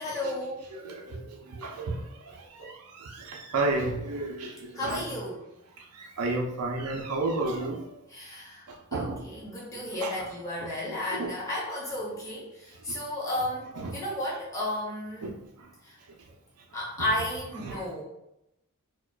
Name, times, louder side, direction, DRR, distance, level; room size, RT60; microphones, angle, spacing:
voice 1, 0.0-0.7 4.7-5.4 8.1-15.3 15.8-16.0 16.7-18.0, left 1 dB, 15° left, -7 dB, 1.1 m, -33 dB
voice 2, 0.7-5.0 5.8-7.9 8.7-9.3 10.0-10.1 10.9-11.3 12.9-13.0 13.8-13.9 15.2-15.3 17.6-17.9, right 2 dB, 85° right, 0 dB, 0.5 m, -32 dB
4.4 x 2.1 x 2.3 m, 0.88 s
head